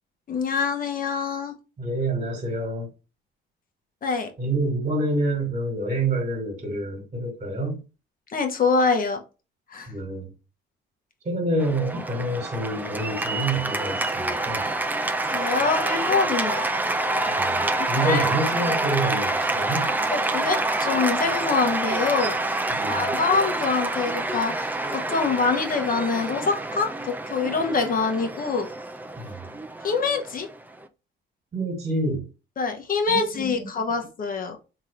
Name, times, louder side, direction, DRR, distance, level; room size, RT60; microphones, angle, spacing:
voice 1, 0.3-1.6 4.0-4.3 8.3-9.2 9.7-9.9 15.3-16.6 17.8-18.3 20.1-22.4 22.9-28.7 29.8-30.5 32.6-34.6, left 4 dB, 45° left, 1.0 m, -25 dB
voice 2, 1.8-2.9 4.4-7.8 9.9-10.3 11.2-14.7 17.3-19.9 22.7-23.1 29.2-29.5 31.5-32.3 33.1-33.7, right 2 dB, 35° right, 1.6 m, -27 dB
Cheering / Applause, 11.6-30.9, right 2 dB, 10° right, 0.4 m, -27 dB
3.6 x 2.9 x 3.1 m
cardioid pair, 90°, 20 cm